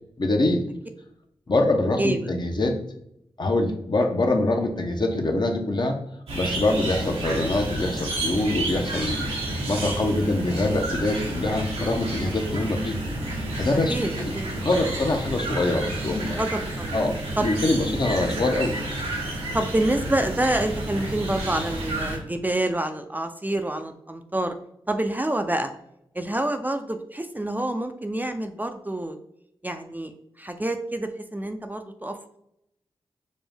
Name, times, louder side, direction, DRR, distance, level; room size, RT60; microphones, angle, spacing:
voice 1, 0.2-0.6 1.5-2.8 3.4-6.0 6.3-9.3 9.7-12.9 13.6-16.4 16.9-18.8, left 2 dB, 50° left, 4 dB, 0.8 m, -24 dB
sound 1, 6.3-22.2, right 1 dB, 90° right, 1.0 m, -30 dB
voice 2, 13.9-14.5 16.4-17.0 17.4-17.5 19.5-24.6 24.9-25.7 26.1-29.2 29.6-30.1 30.4-32.2, right 1 dB, 15° right, 6 dB, 0.4 m, -27 dB
5.2 x 2.0 x 3.4 m, 0.76 s
cardioid pair, 40°, 10 cm